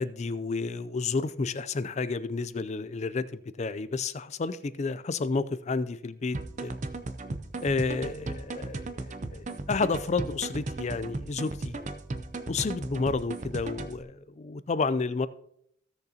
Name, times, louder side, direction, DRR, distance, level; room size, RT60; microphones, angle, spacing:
voice 1, 0.0-6.8 7.6-11.8 12.5-15.3, left 4 dB, 30° left, 15 dB, 0.4 m, -31 dB
sound 1, 6.3-14.0, right 2 dB, 35° right, 0.6 m, -36 dB
16.0 x 6.6 x 2.8 m, 0.73 s
head